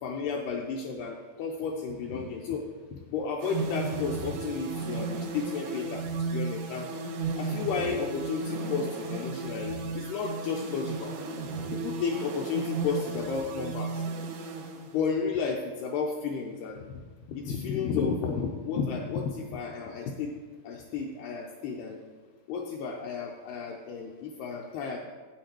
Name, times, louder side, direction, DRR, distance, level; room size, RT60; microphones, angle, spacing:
voice 1, 0.0-6.9 7.4-11.2 11.7-14.0 14.9-17.0 17.3-20.4 20.6-22.0 22.5-25.0, left 5 dB, 80° left, 1 dB, 2.3 m, -32 dB
sound 1, 3.4-15.3, right 3 dB, 85° right, 3.5 m, -34 dB
9.0 x 8.1 x 4.4 m, 1.5 s
omnidirectional pair, 5.2 m